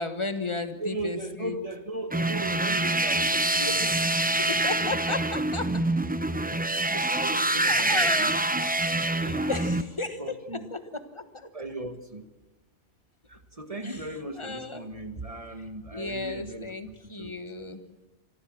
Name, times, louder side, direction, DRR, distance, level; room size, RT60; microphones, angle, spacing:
voice 1, 0.0-1.6 4.4-5.7 6.9-7.2 7.7-8.4 9.1-11.5 13.8-14.0 14.4-14.8 15.9-17.9, left 3 dB, 25° left, 9 dB, 1.3 m, -34 dB
voice 2, 0.7-5.0 7.1-8.3 9.2-9.6 10.2-10.7 11.5-12.3 13.3-17.8, right 2 dB, 30° right, 8 dB, 1.4 m, -38 dB
sound 1, 2.1-9.8, right 2 dB, 15° right, 0.4 m, -26 dB
25.0 x 15.0 x 7.4 m, 1.2 s
omnidirectional pair, 1.2 m